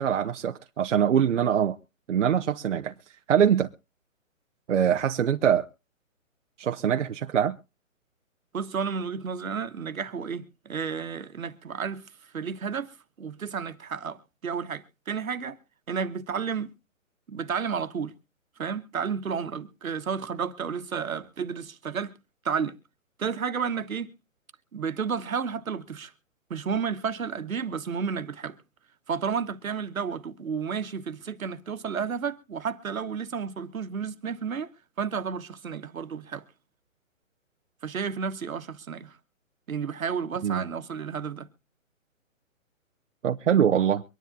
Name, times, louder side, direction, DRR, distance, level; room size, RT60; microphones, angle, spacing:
voice 1, 0.0-1.8 2.1-2.9 3.3-3.7 4.7-5.6 6.6-7.6 40.4-40.6 43.2-44.0, right 8 dB, 60° right, 0.8 m, -23 dB
voice 2, 8.5-12.0 12.3-12.9 13.2-15.6 15.9-16.7 17.3-18.1 18.6-22.1 22.4-22.7 23.2-24.1 24.7-26.1 26.5-28.6 29.1-34.7 35.0-36.4 37.8-39.2 39.7-41.5, right 6 dB, 80° right, 1.5 m, -31 dB
24.0 x 10.5 x 2.7 m
hypercardioid pair, 150°, 41 cm